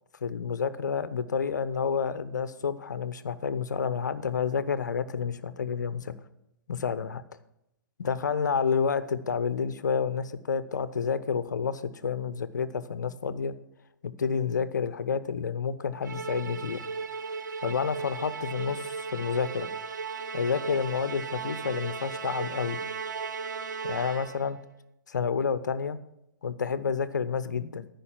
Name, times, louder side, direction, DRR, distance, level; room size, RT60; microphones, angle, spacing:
voice 1, 0.2-6.1 6.7-7.2 8.0-13.5 14.0-16.8 17.6-19.7 20.3-22.8 23.8-24.6 25.1-26.0 26.4-27.9, left 6 dB, 65° left, 15 dB, 0.7 m, -29 dB
Musical instrument, 16.0-24.5, right 5 dB, 65° right, 1.0 m, -36 dB
13.5 x 5.3 x 7.4 m, 0.85 s
figure-of-eight pair, 115°, 10 cm